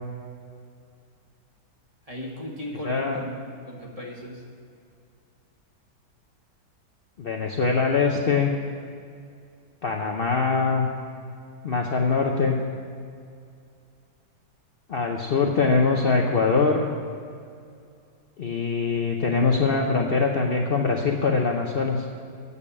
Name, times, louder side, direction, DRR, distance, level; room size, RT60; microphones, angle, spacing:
voice 1, 2.1-4.5, left 1 dB, 20° right, -2 dB, 1.3 m, -36 dB
voice 2, 2.8-3.2 7.2-8.5 9.8-10.9 11.6-12.6 14.9-16.9 18.4-22.1, left 4 dB, 80° left, 0 dB, 0.5 m, -23 dB
8.8 x 6.8 x 8.5 m, 2.4 s
omnidirectional pair, 2.0 m